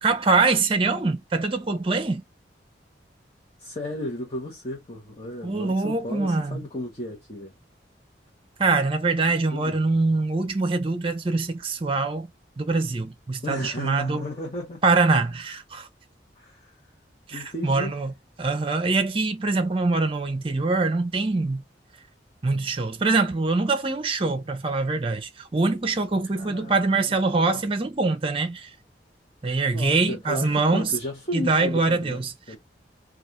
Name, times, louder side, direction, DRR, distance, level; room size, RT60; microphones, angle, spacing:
voice 1, 0.0-2.2 5.4-6.6 8.6-12.3 12.6-14.3 14.8-15.9 17.3-21.6 22.4-28.7 29.4-30.9 31.3-32.3, right 3 dB, 30° right, 0.6 m, -24 dB
voice 2, 3.6-7.5 9.5-9.8 13.4-14.8 16.4-16.7 17.3-17.9 26.3-27.6 29.7-32.6, left 1 dB, 35° left, 1.0 m, -34 dB
3.2 x 2.4 x 2.5 m
head